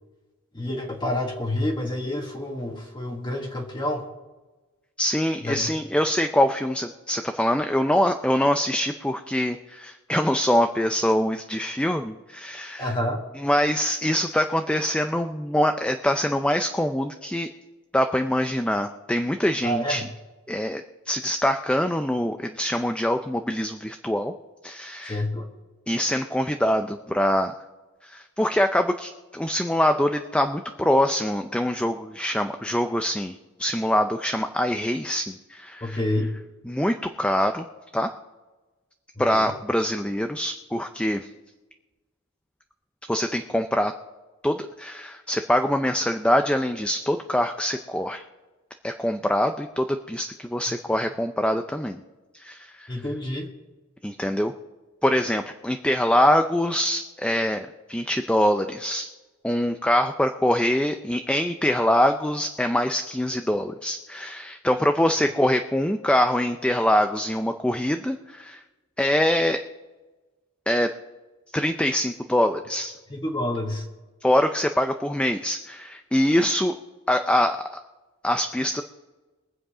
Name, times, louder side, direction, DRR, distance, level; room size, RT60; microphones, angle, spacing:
voice 1, 0.5-4.0 5.4-5.7 12.8-13.2 19.6-20.1 25.0-25.5 35.8-36.3 39.2-39.5 50.7-51.1 52.9-53.5 73.1-73.9, left 1 dB, 20° left, 0 dB, 1.4 m, -28 dB
voice 2, 5.0-12.8 13.4-17.5 17.9-20.0 20.5-24.3 24.6-25.2 25.9-27.5 28.0-36.0 36.7-37.7 37.9-38.1 39.2-41.2 43.1-43.9 44.4-48.2 48.8-52.0 52.3-52.9 54.0-54.5 55.0-59.1 59.4-68.6 69.0-69.6 70.7-70.9 71.5-72.9 74.2-76.7 77.1-77.6 78.2-78.8, left 1 dB, 5° left, 6 dB, 0.5 m, -24 dB
22.5 x 7.9 x 4.9 m, 1.2 s
head